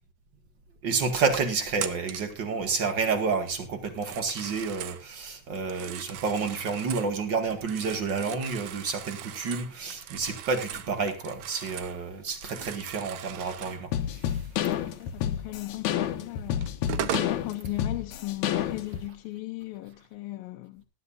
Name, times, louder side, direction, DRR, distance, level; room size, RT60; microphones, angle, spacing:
voice 1, 0.8-14.4, right 4 dB, 40° right, 2.1 m, -30 dB
Telephone, 1.8-2.4 3.9-5.0 5.6-7.1 7.5-12.0 12.3-13.8 15.9-16.0 16.6-17.4, right 11 dB, 65° right, 1.9 m, -38 dB
sound 1, 13.9-19.1, left 10 dB, 70° left, 2.2 m, -29 dB
voice 2, 14.8-20.9, left 18 dB, 90° left, 2.6 m, -38 dB
18.5 x 12.0 x 2.6 m
omnidirectional pair, 4.0 m